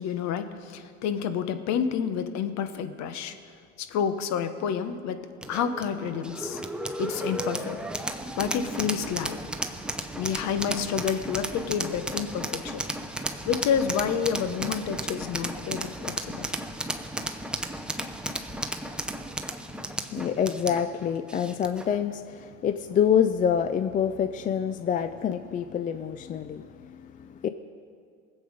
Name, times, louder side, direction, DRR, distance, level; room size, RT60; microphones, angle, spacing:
voice 1, 0.0-3.4 3.8-6.6 7.0-7.8 8.4-9.4 10.1-12.8 13.4-16.5, left 7 dB, 50° left, 10 dB, 1.1 m, -29 dB
sound 1, 5.4-21.9, right 1 dB, 5° right, 0.7 m, -34 dB
voice 2, 20.1-27.5, left 8 dB, 25° left, 11 dB, 0.4 m, -27 dB
19.5 x 7.8 x 5.1 m, 2.2 s
hypercardioid pair, 95°, 35 cm